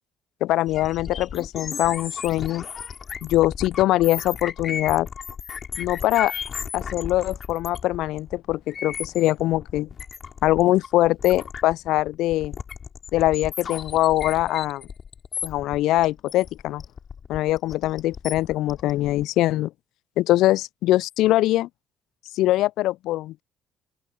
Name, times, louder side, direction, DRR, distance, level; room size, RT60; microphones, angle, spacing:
voice 1, 0.4-2.6 3.2-5.1 5.8-6.3 6.7-9.9 10.4-12.5 13.1-14.8 15.4-16.8 17.3-19.7 20.2-21.7 22.3-23.4, left 16 dB, 65° left, 0.4 m, -22 dB
sound 1, 0.7-19.2, left 7 dB, 45° left, 3.6 m, -35 dB
open air
figure-of-eight pair, 50°, 0 cm